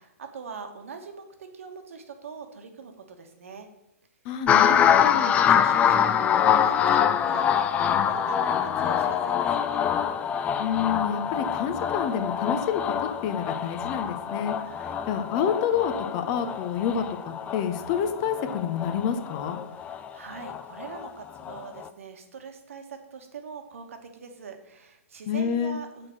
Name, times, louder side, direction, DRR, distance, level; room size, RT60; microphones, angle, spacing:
voice 1, 0.0-3.7 5.4-9.8 14.7-15.1 20.1-26.1, right 5 dB, 65° right, 5 dB, 1.2 m, -42 dB
voice 2, 4.2-5.3 10.6-14.6 15.1-19.6 25.3-25.8, left 8 dB, 35° left, 9 dB, 0.7 m, -28 dB
sound 1, 4.5-21.1 21.4-21.9, left 8 dB, 15° left, 0.3 m, -25 dB
6.2 x 4.5 x 5.9 m, 0.86 s
hypercardioid pair, 125°, 8 cm